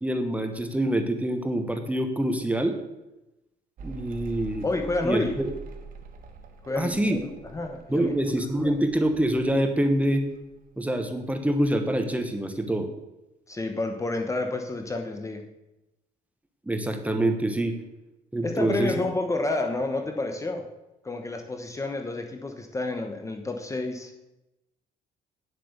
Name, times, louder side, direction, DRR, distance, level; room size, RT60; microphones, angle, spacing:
voice 1, 0.0-2.8 3.8-4.6 5.0-5.5 6.7-7.2 7.9-10.2 10.8-12.9 16.7-17.8 18.3-19.0, right 1 dB, 10° right, 6 dB, 1.2 m, -25 dB
Mechanical fan, 3.8-10.7 10.9-11.7, right 3 dB, 55° right, 1.6 m, -45 dB
voice 2, 4.6-5.3 6.6-8.1 8.6-8.7 13.5-15.4 18.4-20.7 21.0-24.1, left 2 dB, 20° left, 5 dB, 1.1 m, -30 dB
9.3 x 7.9 x 6.6 m, 0.95 s
cardioid pair, 110°, 17 cm